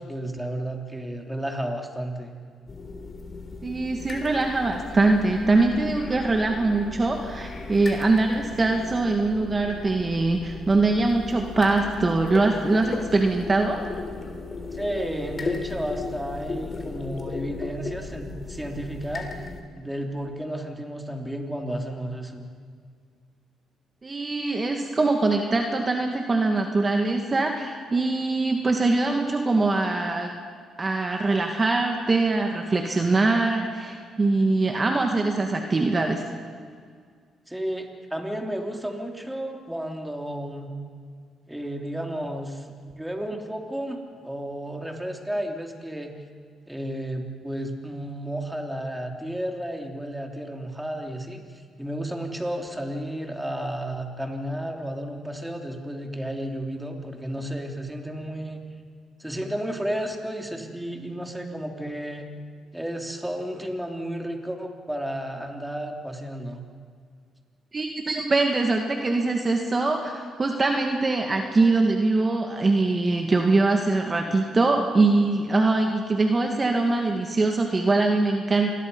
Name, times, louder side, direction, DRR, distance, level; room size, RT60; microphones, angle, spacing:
voice 1, 0.0-2.3 14.7-19.3 19.8-22.5 37.5-40.7 41.5-46.1 46.7-51.4 51.8-58.6 59.2-62.3 62.7-66.6, right 1 dB, 5° right, 2 dB, 3.2 m, -32 dB
sound 1, 2.7-19.6, left 4 dB, 40° left, 3.5 m, -36 dB
voice 2, 3.6-13.8 24.0-30.4 30.8-36.2 67.7-78.7, right 3 dB, 30° right, 3 dB, 2.0 m, -23 dB
28.0 x 21.5 x 5.5 m, 2.1 s
cardioid pair, 90°, 0 cm